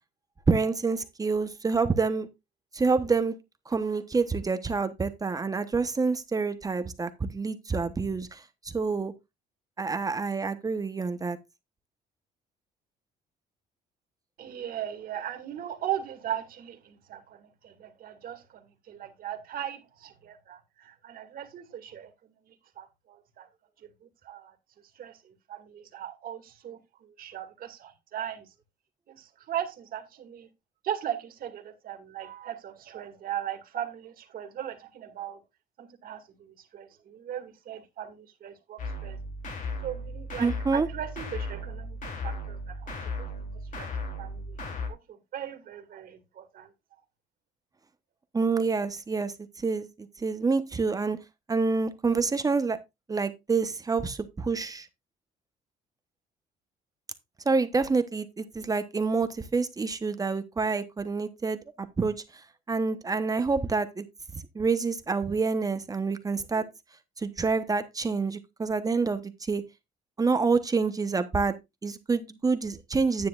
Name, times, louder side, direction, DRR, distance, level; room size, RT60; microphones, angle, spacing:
voice 1, 0.5-2.3 2.7-3.4 3.7-8.4 8.7-9.1 9.8-11.4 40.4-40.9 48.3-49.9 50.2-51.2 51.5-52.8 53.1-54.9 57.4-61.6 62.0-62.2 62.7-64.0 64.5-66.7 67.2-69.6 70.2-71.6 71.8-73.3, right 4 dB, 20° right, 1.0 m, -27 dB
voice 2, 14.4-22.1 22.5-23.5 24.2-24.5 25.0-28.5 29.1-30.5 30.8-35.4 35.8-39.2 39.8-42.0 42.2-43.3 43.8-43.9 44.2-44.6 44.9-46.7, right 10 dB, 60° right, 2.2 m, -38 dB
sound 1, 38.8-44.9, left 2 dB, 50° left, 3.1 m, -36 dB
10.0 x 9.4 x 2.4 m
cardioid pair, 110°, 17 cm